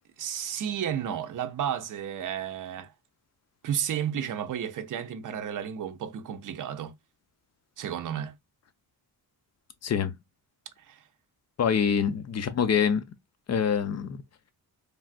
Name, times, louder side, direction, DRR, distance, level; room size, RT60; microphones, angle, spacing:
voice 1, 0.2-2.9 3.6-6.9 7.8-8.3 10.9-11.0 11.8-12.0, right 9 dB, 55° right, 0.6 m, -32 dB
voice 2, 9.8-10.1 11.6-13.0 13.5-14.2, left 7 dB, 45° left, 0.5 m, -25 dB
3.3 x 2.4 x 2.4 m
wide cardioid pair, 145°, 38 cm